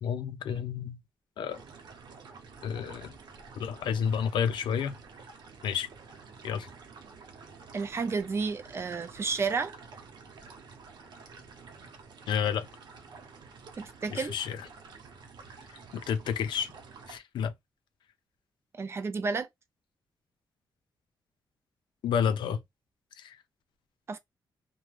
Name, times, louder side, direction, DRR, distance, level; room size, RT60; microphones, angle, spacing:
voice 1, 0.0-1.0 1.4-1.6 2.6-3.1 3.6-4.9 5.6-5.9 6.4-6.7 12.3-12.7 14.1-14.6 15.9-16.7 17.1-17.5 22.0-22.6 23.2-23.4, left 7 dB, 90° left, 0.4 m, -30 dB
sound 1, 1.5-17.2, right 4 dB, 70° right, 0.8 m, -50 dB
voice 2, 7.7-9.7 13.8-14.3 18.7-19.5 24.1-24.2, right 4 dB, 35° right, 0.4 m, -31 dB
2.4 x 2.1 x 3.0 m
wide cardioid pair, 140°, 8 cm